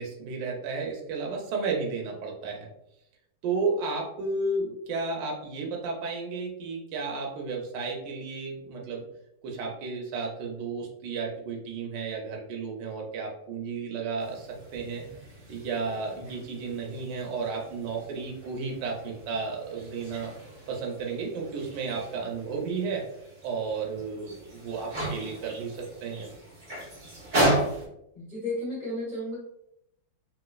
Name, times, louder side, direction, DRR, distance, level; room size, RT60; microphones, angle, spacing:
voice 1, 0.0-2.7 3.4-9.0 9.4-15.0 15.5-20.3 20.7-23.0 23.4-26.3, right 4 dB, 70° right, 0 dB, 1.3 m, -33 dB
sound 1, 14.2-27.9, right 1 dB, 50° right, 0.6 m, -35 dB
voice 2, 28.1-29.4, left 1 dB, 40° left, -8 dB, 0.7 m, -33 dB
3.0 x 2.9 x 2.2 m, 0.78 s
omnidirectional pair, 2.1 m